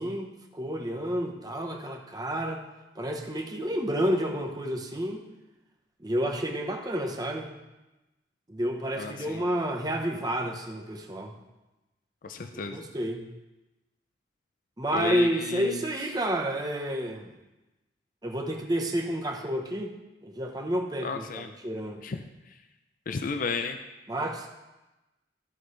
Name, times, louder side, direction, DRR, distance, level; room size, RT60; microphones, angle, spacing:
voice 1, 0.0-2.6 2.9-5.2 6.0-7.5 8.5-11.4 12.5-13.2 14.8-17.3 18.2-19.9 20.2-22.0 24.1-24.5, right 1 dB, 20° right, 1 dB, 0.9 m, -30 dB
voice 2, 9.0-9.4 12.2-12.8 14.9-15.9 21.0-21.5 22.0-22.2 23.1-23.8, left 4 dB, 45° left, 7 dB, 0.4 m, -33 dB
14.0 x 6.2 x 3.3 m, 1.0 s
head